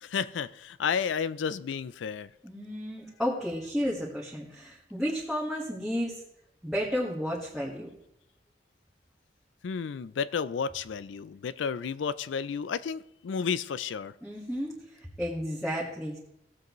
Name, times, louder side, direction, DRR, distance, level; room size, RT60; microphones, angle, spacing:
voice 1, 0.0-2.3 9.6-14.1, left 6 dB, 75° left, 0.4 m, -32 dB
voice 2, 2.4-6.2 6.6-7.9 14.2-14.8 15.2-16.2, equal, 5° right, 1.6 m, -32 dB
17.0 x 7.6 x 3.1 m
head